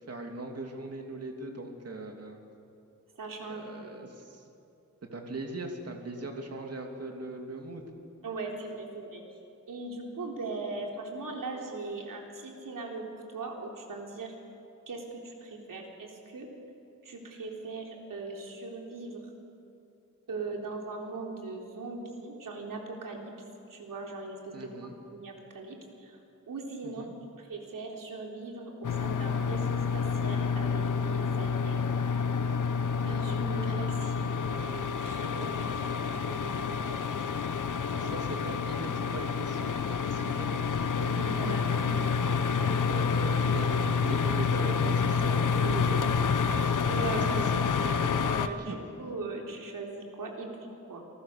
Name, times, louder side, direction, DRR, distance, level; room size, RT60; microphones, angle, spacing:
voice 1, 0.0-2.4 3.5-4.4 5.1-7.8 24.5-24.9 26.8-27.1 37.9-40.6 41.1-41.6 41.8-42.4 42.8-46.4 47.0-47.7 48.0-48.2 48.6-48.8, right 2 dB, 50° right, 2 dB, 2.9 m, -39 dB
voice 2, 3.2-3.9 8.2-9.2 9.7-13.0 13.3-14.3 14.9-16.5 17.0-19.2 20.3-23.3 23.7-26.2 26.5-27.1 27.4-32.2 33.0-37.6 38.0-38.1 41.0-42.1 42.6-43.0 46.8-47.3 48.1-50.5 50.9-51.0, right 3 dB, 85° right, 0 dB, 3.9 m, -40 dB
sound 1, 28.8-48.5, left 5 dB, 70° left, 1.0 m, -28 dB
28.5 x 19.5 x 6.7 m, 2.6 s
wide cardioid pair, 155°, 32 cm